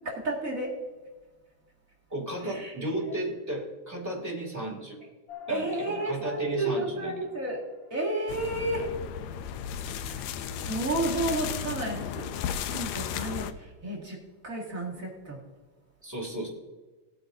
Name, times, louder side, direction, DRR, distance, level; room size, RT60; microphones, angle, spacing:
voice 1, 0.0-0.8 2.4-2.7 3.0-3.1 5.5-7.6 7.9-8.9 10.0-12.3 12.6-14.2 14.4-15.4, right 2 dB, 30° right, -5 dB, 2.1 m, -32 dB
voice 2, 2.1-5.0 5.5-7.1 16.0-16.5, right 1 dB, 5° right, -2 dB, 2.0 m, -34 dB
sound 1, 5.3-10.0, left 8 dB, 55° left, 2.2 m, -49 dB
sound 2, 8.3-13.5, left 8 dB, 80° left, 1.7 m, -34 dB
17.0 x 8.8 x 2.6 m, 1.2 s
omnidirectional pair, 3.5 m